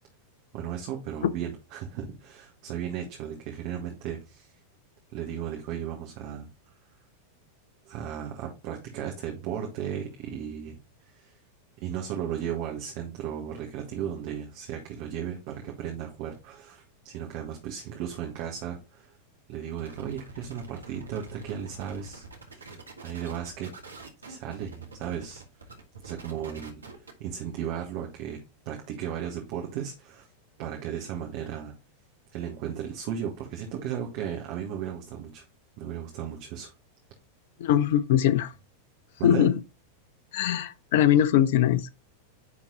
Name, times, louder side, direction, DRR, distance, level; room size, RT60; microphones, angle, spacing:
voice 1, 0.5-4.5 5.1-6.5 7.9-10.8 11.1-11.3 11.8-19.2 19.5-23.7 24.2-25.4 26.0-26.8 27.2-28.4 28.7-30.3 30.6-31.7 32.3-35.4 35.8-36.7 39.2-39.5, right 9 dB, 45° right, 1.6 m, -35 dB
sound 1, 19.8-27.3, right 3 dB, 75° right, 1.7 m, -46 dB
voice 2, 37.6-38.5 39.2-39.5 40.3-41.9, left 11 dB, 55° left, 0.5 m, -21 dB
9.8 x 3.9 x 3.9 m
figure-of-eight pair, 90°, 0 cm